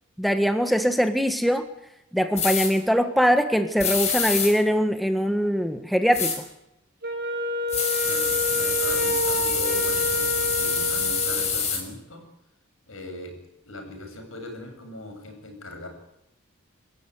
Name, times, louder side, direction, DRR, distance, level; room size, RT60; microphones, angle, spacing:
voice 1, 0.2-1.7 2.1-6.3, equal, ahead, 7 dB, 1.4 m, -22 dB
sound 1, 2.4-2.7 3.8-4.5 6.1-6.4 7.7-11.8, left 6 dB, 35° left, 5.6 m, -26 dB
Wind instrument woodwind instrument, 7.0-11.7, right 1 dB, 50° right, 4.7 m, -28 dB
voice 2, 8.0-12.2 12.9-13.3 13.6-15.9, left 2 dB, 80° left, 4 dB, 7.8 m, -39 dB
27.0 x 14.5 x 9.8 m, 0.85 s
head